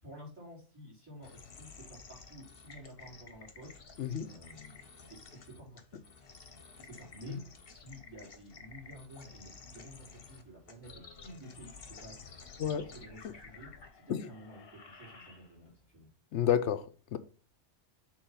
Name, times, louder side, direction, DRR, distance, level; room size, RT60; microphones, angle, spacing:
voice 1, 0.0-4.8 5.0-6.0 6.7-7.4 7.7-12.1 12.6-16.1, right 1 dB, 10° right, -7 dB, 3.9 m, -51 dB
sound 1, 1.2-15.8, left 5 dB, 55° left, 1.2 m, -53 dB
voice 2, 4.0-4.3 7.3-7.4 12.6-12.8 14.1-14.3 16.3-17.2, left 9 dB, 80° left, 11 dB, 1.0 m, -30 dB
6.8 x 4.0 x 5.8 m, 0.37 s
omnidirectional pair, 1.2 m